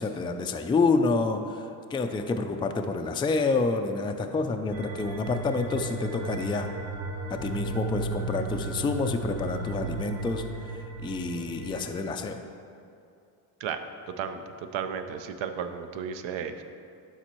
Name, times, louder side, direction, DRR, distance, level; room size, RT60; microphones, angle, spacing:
voice 1, 0.0-1.6 1.9-6.7 7.3-10.4 10.7-12.4, left 3 dB, 10° left, 5 dB, 0.3 m, -28 dB
sound 1, 4.7-12.0, right 2 dB, 35° right, 1.3 m, -35 dB
voice 2, 14.7-16.6, right 7 dB, 70° right, 8 dB, 0.7 m, -33 dB
12.0 x 4.1 x 3.0 m, 2.5 s
supercardioid pair, 80°, 47 cm